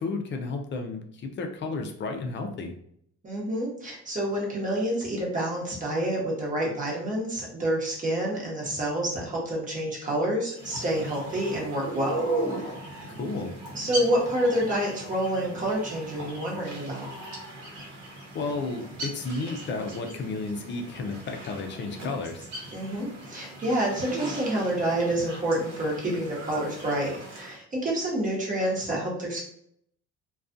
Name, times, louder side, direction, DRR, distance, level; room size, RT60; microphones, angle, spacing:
voice 1, 0.0-2.7 13.1-13.5 18.3-22.5, left 3 dB, 40° left, 4 dB, 0.5 m, -32 dB
voice 2, 3.2-12.3 12.5-13.1 13.7-17.1 22.7-29.4, right 1 dB, 25° right, -3 dB, 1.0 m, -28 dB
sound 1, 10.5-27.6, right 2 dB, 80° right, 0.9 m, -38 dB
2.3 x 2.3 x 2.5 m, 0.67 s
cardioid pair, 125°, 30 cm